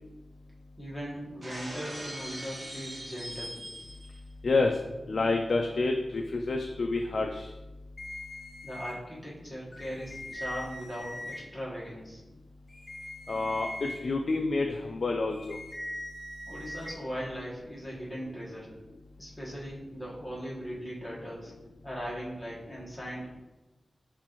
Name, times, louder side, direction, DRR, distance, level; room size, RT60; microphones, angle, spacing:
voice 1, 0.8-3.6 8.6-12.2 16.5-18.7 19.2-21.5 21.8-23.4, equal, 5° left, -7 dB, 1.4 m, -39 dB
Shatter, 1.4-4.2, right 1 dB, 40° right, 1.0 m, -41 dB
voice 2, 4.4-4.7 5.1-7.5 13.3-15.6, left 3 dB, 70° left, 2 dB, 0.3 m, -28 dB
sound 1, 8.0-8.9 9.7-11.4 12.7-14.0 15.3-16.9, left 1 dB, 40° left, 0.7 m, -41 dB
5.5 x 2.5 x 3.0 m, 1.0 s
wide cardioid pair, 75°, 0 cm